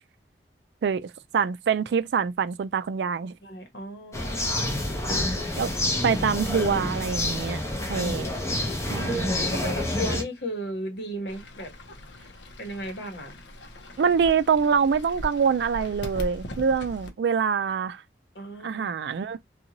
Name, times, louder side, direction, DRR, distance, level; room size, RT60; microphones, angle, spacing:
voice 1, 0.8-3.3 5.6-5.8 6.0-7.6 7.9-8.3 8.9-9.3 14.0-18.0 18.6-19.4, right 6 dB, 65° right, 0.3 m, -25 dB
voice 2, 3.4-4.7 9.5-11.7 12.6-13.4 18.3-18.9, equal, 70° left, 1.1 m, -35 dB
sound 1, 4.1-10.2, left 1 dB, 15° left, 0.7 m, -28 dB
Fowl / Bird, 11.3-17.1, equal, 85° left, 0.7 m, -40 dB
2.6 x 2.3 x 2.8 m
head